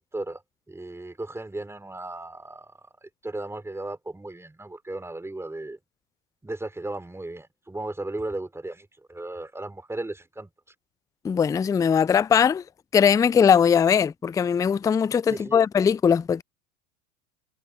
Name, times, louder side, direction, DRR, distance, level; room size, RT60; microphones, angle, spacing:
voice 1, 0.7-5.8 6.4-10.5 15.3-15.6, right 2 dB, 5° right, 3.4 m, -35 dB
voice 2, 11.2-12.6 12.9-16.4, left 7 dB, 10° left, 0.4 m, -20 dB
hypercardioid pair, 90°, 36 cm